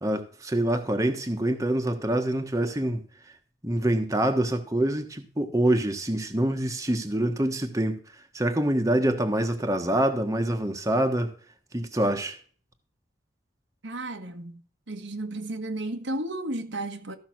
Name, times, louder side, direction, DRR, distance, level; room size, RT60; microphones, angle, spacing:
voice 1, 0.0-3.0 3.6-8.0 8.3-11.3 11.7-12.4, right 1 dB, 15° right, 1.3 m, -25 dB
voice 2, 13.8-14.6 14.9-17.2, right 1 dB, 85° right, 1.6 m, -33 dB
14.5 x 5.9 x 6.1 m
head